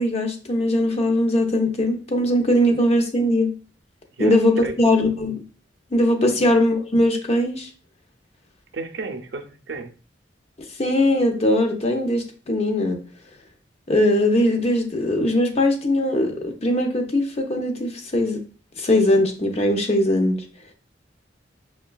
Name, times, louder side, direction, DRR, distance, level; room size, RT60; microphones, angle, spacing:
voice 1, 0.0-3.5 4.2-5.4 5.9-7.7 10.8-13.0 13.9-18.4 18.8-20.4, left 1 dB, 35° left, 0.6 m, -20 dB
voice 2, 8.7-9.9, right 3 dB, 70° right, 0.5 m, -33 dB
6.3 x 2.2 x 2.2 m
head